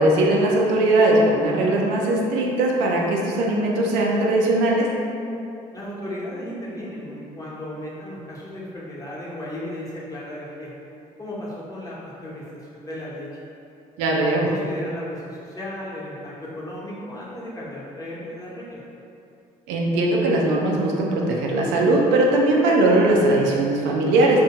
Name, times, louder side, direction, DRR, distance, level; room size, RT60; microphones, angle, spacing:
voice 1, 0.0-4.9 14.0-14.5 19.7-24.4, right 2 dB, 80° right, -2 dB, 0.4 m, -19 dB
voice 2, 5.7-10.7 11.2-12.4 12.7-13.3 14.1-18.8, left 1 dB, 20° left, -7 dB, 0.8 m, -35 dB
2.5 x 2.1 x 2.8 m, 2.6 s
hypercardioid pair, 55°, 18 cm